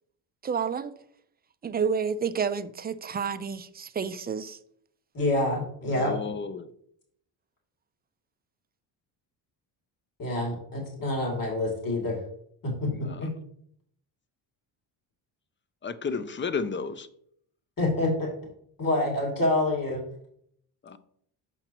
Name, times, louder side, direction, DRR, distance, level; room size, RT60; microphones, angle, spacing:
voice 1, 0.4-0.9 1.6-4.6, right 6 dB, 20° right, 0.4 m, -30 dB
voice 2, 5.1-6.1 10.2-12.2 12.6-13.3 17.8-18.3 18.8-20.0, left 2 dB, 45° left, 2.8 m, -27 dB
voice 3, 5.9-6.7 12.9-13.2 15.8-17.1 20.8-21.0, left 5 dB, 25° left, 0.6 m, -33 dB
7.8 x 5.7 x 3.0 m
supercardioid pair, 75°, 48 cm